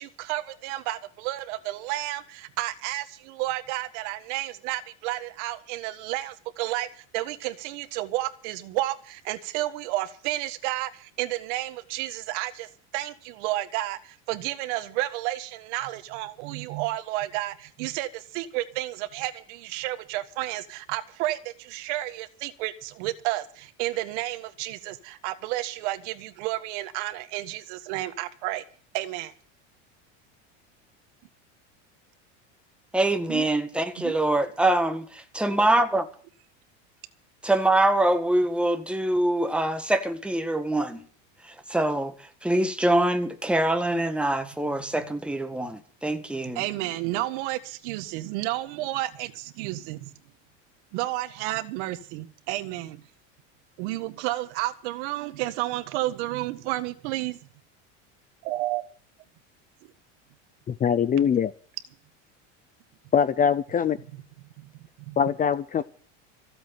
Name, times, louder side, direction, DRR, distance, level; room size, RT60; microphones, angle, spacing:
voice 1, 0.0-28.6 28.9-29.3 33.3-33.5 34.0-34.1 44.8-44.9 46.5-50.1 50.9-53.0 53.8-57.4 58.4-58.8 64.6-64.7 65.1-65.2, right 16 dB, 70° right, 1.7 m, -31 dB
voice 2, 32.9-36.1 37.4-41.0 41.4-46.6, right 1 dB, 5° right, 1.9 m, -24 dB
voice 3, 60.7-61.5 63.1-64.0 65.2-65.8, left 7 dB, 25° left, 0.7 m, -22 dB
15.5 x 7.9 x 8.7 m
supercardioid pair, 125°, 36 cm